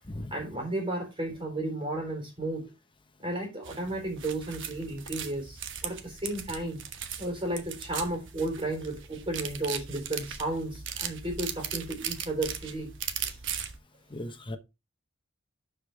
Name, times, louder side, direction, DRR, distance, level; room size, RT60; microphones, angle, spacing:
voice 1, 0.3-2.7 3.2-6.8 7.2-12.9 13.2-13.4, right 1 dB, 25° right, 3.7 m, -33 dB
sound 1, 3.6-13.8, right 8 dB, 60° right, 1.2 m, -38 dB
voice 2, 14.1-14.6, left 1 dB, 25° left, 0.9 m, -37 dB
11.5 x 5.1 x 3.4 m
head